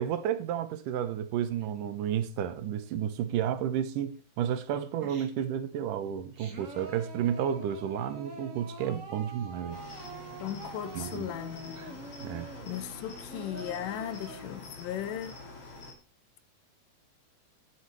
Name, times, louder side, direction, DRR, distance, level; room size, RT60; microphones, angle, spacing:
voice 1, 0.0-9.8 10.9-11.3 11.8-11.9 12.2-12.5, right 9 dB, 80° right, 2.6 m, -32 dB
Singing, 5.0-5.6 6.1-14.4, right 3 dB, 35° right, 1.5 m, -46 dB
Cricket, 9.7-15.9, left 2 dB, 50° left, 3.5 m, -46 dB
voice 2, 10.4-12.0 12.7-15.3, left 11 dB, 90° left, 2.5 m, -37 dB
16.5 x 7.3 x 3.2 m
omnidirectional pair, 3.7 m